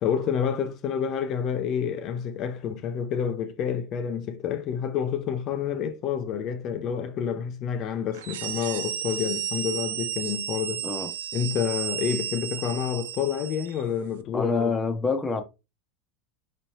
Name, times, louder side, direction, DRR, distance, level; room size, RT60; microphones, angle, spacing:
voice 1, 0.0-10.8 11.3-14.8, left 8 dB, 50° left, 0.5 m, -28 dB
sound 1, 8.1-13.8, right 10 dB, 80° right, 0.4 m, -33 dB
voice 2, 14.3-15.4, left 4 dB, 15° left, 0.8 m, -26 dB
4.2 x 3.1 x 2.8 m
hypercardioid pair, 100°, 0 cm